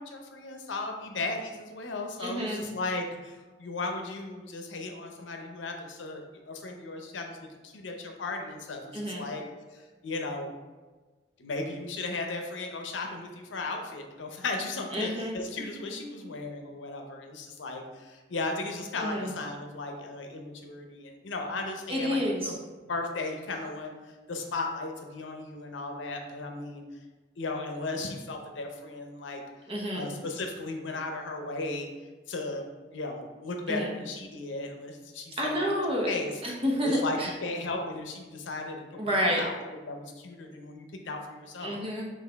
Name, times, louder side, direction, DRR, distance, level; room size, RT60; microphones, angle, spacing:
voice 1, 0.0-7.4 7.6-9.4 9.7-10.5 11.4-22.6 22.8-23.9 24.3-26.8 27.4-29.4 29.9-31.9 32.3-32.7 32.9-35.7 36.1-36.3 36.8-39.6 39.9-41.8, left 3 dB, 85° left, 3 dB, 0.6 m, -36 dB
voice 2, 2.2-2.6 8.9-9.3 14.9-15.4 19.0-19.3 21.9-22.5 29.7-30.1 33.7-33.9 35.4-36.2 36.4-37.3 39.0-39.4 41.6-42.1, equal, 30° right, -2 dB, 0.9 m, -29 dB
6.0 x 2.5 x 3.4 m, 1.3 s
head